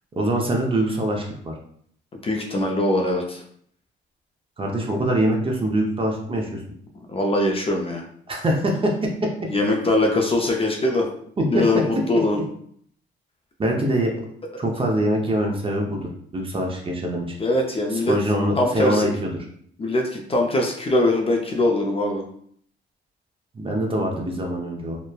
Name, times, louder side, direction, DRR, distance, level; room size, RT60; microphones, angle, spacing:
voice 1, 0.2-1.5 4.6-6.6 8.3-9.1 11.4-11.6 13.6-14.1 14.6-17.3 17.9-19.3 23.5-25.0, right 1 dB, 25° right, 1 dB, 0.6 m, -24 dB
voice 2, 2.2-3.4 7.0-8.0 9.5-11.1 11.5-12.4 14.5-14.7 17.4-18.2 18.6-19.1 19.8-22.3, left 1 dB, 30° left, 1 dB, 0.5 m, -22 dB
3.0 x 2.1 x 2.2 m, 0.63 s
cardioid pair, 90°, 20 cm